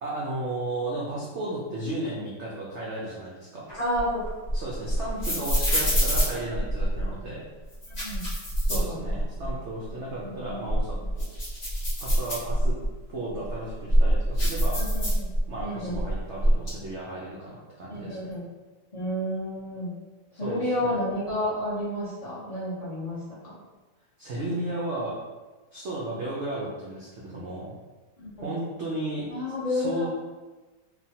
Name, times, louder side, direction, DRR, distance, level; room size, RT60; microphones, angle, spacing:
voice 1, 0.0-3.7 4.5-7.4 8.6-11.0 12.0-12.8 13.1-14.8 15.5-18.3 20.4-21.0 24.2-25.2 25.7-27.7 28.4-29.3 29.7-30.1, right 1 dB, 85° right, -5 dB, 0.6 m, -34 dB
sound 1, 3.7-7.1 7.7-9.5 9.9-10.0 10.5-12.9 13.5-15.6 15.9-16.7, equal, 35° left, 1.0 m, -25 dB
voice 2, 3.8-4.2 5.6-5.7 7.9-8.2 8.7-9.1 10.2-10.6 14.7-15.3 15.6-16.0 17.9-18.5 18.9-19.9 20.4-23.6 28.2-28.5 29.3-30.1, left 1 dB, 50° left, -10 dB, 0.4 m, -31 dB
3.2 x 2.2 x 2.7 m, 1.2 s
omnidirectional pair, 1.8 m